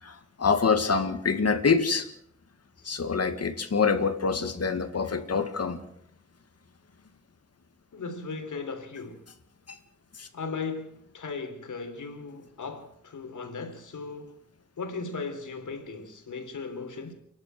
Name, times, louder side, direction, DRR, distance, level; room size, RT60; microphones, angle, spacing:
voice 1, 0.0-2.1 2.8-5.8 9.7-9.8 10.1-10.3, left 5 dB, 55° left, 2.2 m, -26 dB
voice 2, 7.9-9.3 10.3-14.4 14.8-17.1, left 4 dB, 85° left, 3.5 m, -37 dB
29.5 x 11.5 x 7.7 m
wide cardioid pair, 135°, 30 cm